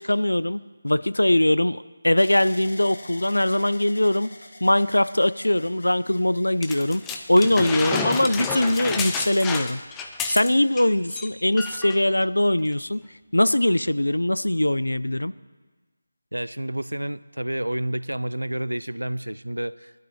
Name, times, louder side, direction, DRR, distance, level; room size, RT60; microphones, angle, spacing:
voice 1, 0.0-4.3 4.6-9.8 10.3-13.1 13.3-15.3, left 1 dB, 85° left, 16 dB, 0.4 m, -21 dB
sound 1, 2.2-10.2 10.9-11.5, left 2 dB, 55° left, 1.5 m, -47 dB
sound 2, 6.6-10.8 11.1-11.3 11.6-12.0 12.7-12.8, left 5 dB, 10° left, 0.5 m, -30 dB
voice 2, 16.3-19.9, right 1 dB, 90° right, 17 dB, 0.4 m, -29 dB
19.5 x 12.0 x 3.2 m, 1.3 s
figure-of-eight pair, 160°, 0 cm